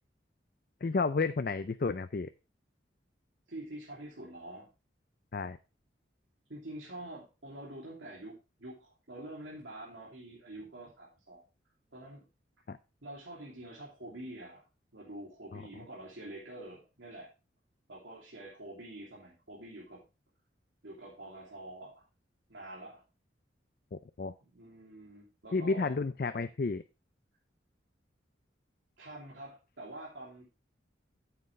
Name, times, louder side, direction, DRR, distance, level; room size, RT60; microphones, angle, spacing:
voice 1, 0.8-2.3 5.3-5.6 12.7-12.8 15.5-15.6 24.2-24.3 25.5-26.8, left 4 dB, 50° left, 11 dB, 0.4 m, -31 dB
voice 2, 3.5-4.7 6.5-11.4 11.9-12.2 13.0-14.6 14.9-17.3 17.9-20.0 20.8-22.0 22.5-23.0 24.4-25.9 29.0-30.4, right 1 dB, 90° right, -4 dB, 2.9 m, -46 dB
9.3 x 8.0 x 3.2 m, 0.30 s
head